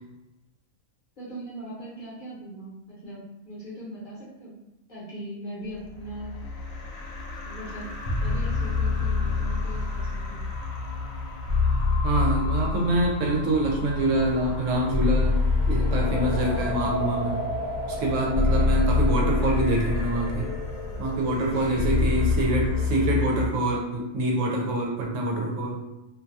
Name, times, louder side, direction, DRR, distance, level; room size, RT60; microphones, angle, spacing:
voice 1, 1.2-4.5 4.9-6.4 7.4-7.9 8.2-10.4 21.6-21.7, right 1 dB, 45° left, -8 dB, 0.9 m, -39 dB
sound 1, 5.9-23.5, left 3 dB, 80° left, 1.0 m, -27 dB
voice 2, 12.0-15.3 15.7-17.4 17.9-20.5 21.0-25.8, right 1 dB, 75° right, -1 dB, 0.9 m, -25 dB
2.5 x 2.2 x 2.6 m, 0.95 s
omnidirectional pair, 1.4 m